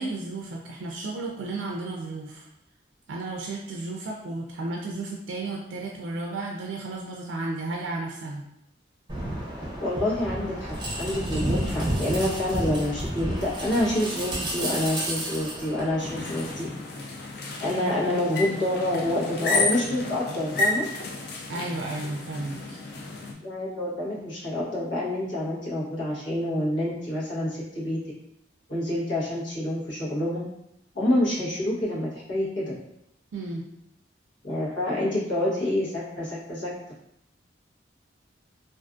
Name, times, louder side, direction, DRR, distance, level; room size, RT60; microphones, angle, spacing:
voice 1, 0.0-2.5 3.1-8.5 21.5-22.8 33.3-33.6, right 2 dB, 85° right, -1 dB, 0.3 m, -33 dB
sound 1, 9.1-16.5, right 1 dB, 25° right, 0.5 m, -31 dB
voice 2, 9.8-16.7 17.6-20.9 23.4-28.0 28.7-30.4 30.9-32.7 34.4-36.7, left 1 dB, 90° left, -7 dB, 1.0 m, -27 dB
sound 2, 16.0-23.3, left 2 dB, 55° left, 0.4 m, -31 dB
2.5 x 2.4 x 2.3 m, 0.81 s
head